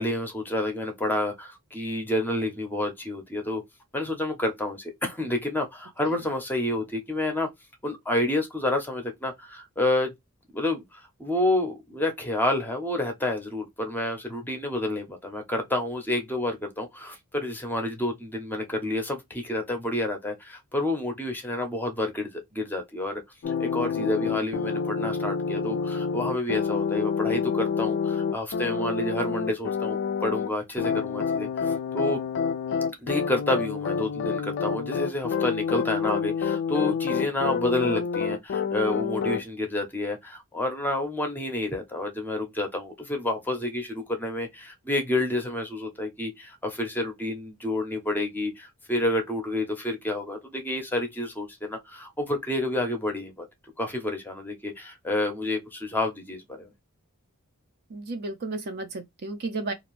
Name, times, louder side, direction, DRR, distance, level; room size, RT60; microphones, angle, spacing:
voice 1, 0.0-3.6 3.9-7.5 7.8-10.1 10.5-23.2 23.6-32.2 33.0-53.5 53.8-56.7, left 1 dB, 10° left, 0.6 m, -29 dB
sound 1, 23.4-30.5 30.8-39.4, left 6 dB, 55° left, 0.3 m, -28 dB
voice 2, 57.9-59.7, right 3 dB, 45° right, 0.5 m, -33 dB
2.5 x 2.2 x 3.0 m
head